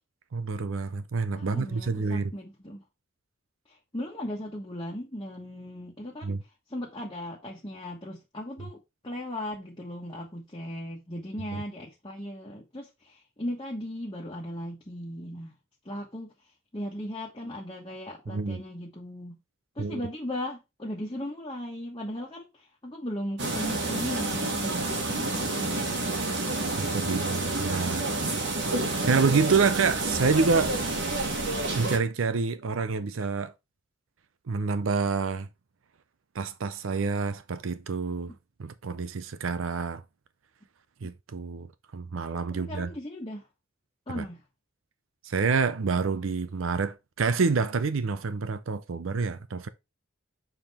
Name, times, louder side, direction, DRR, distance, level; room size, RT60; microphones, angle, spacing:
voice 1, 0.3-2.3 6.2-6.4 11.5-11.6 18.3-18.6 19.8-20.0 26.8-28.1 28.8-30.7 31.7-33.5 34.5-35.5 36.3-38.3 38.6-40.0 41.0-41.7 41.9-42.9 44.1-44.3 45.2-49.7, right 4 dB, 80° right, 0.5 m, -27 dB
voice 2, 1.3-2.8 3.7-15.6 15.8-19.3 19.7-26.1 41.0-41.1 42.5-43.5 44.1-44.4, left 1 dB, 25° left, 1.3 m, -37 dB
sound 1, 23.4-32.0, right 2 dB, 60° right, 1.3 m, -29 dB
6.9 x 3.7 x 4.3 m
head